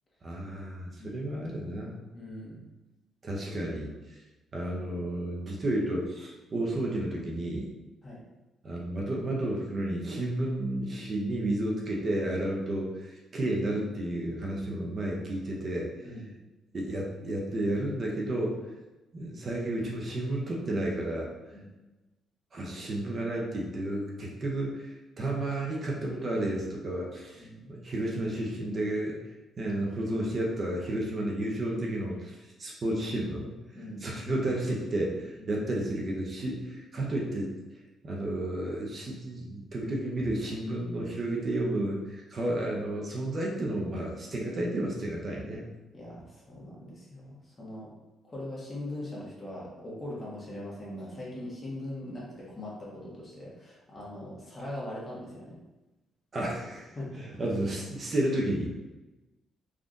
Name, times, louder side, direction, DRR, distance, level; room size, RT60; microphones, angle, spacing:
voice 1, 0.2-2.0 3.2-4.2 4.5-7.7 8.6-15.9 16.7-18.6 19.1-21.3 22.5-29.2 29.6-33.5 34.0-37.5 38.0-45.6 56.3-58.7, right 1 dB, 40° right, -2 dB, 0.6 m, -32 dB
voice 2, 2.1-2.6 8.0-8.2 16.0-16.4 21.5-21.7 27.4-27.7 33.7-34.2 35.4-35.5 45.9-47.9 48.3-55.6 56.9-57.2, left 1 dB, 30° left, -5 dB, 1.2 m, -41 dB
3.6 x 2.4 x 2.5 m, 1.1 s
cardioid pair, 90°, 0 cm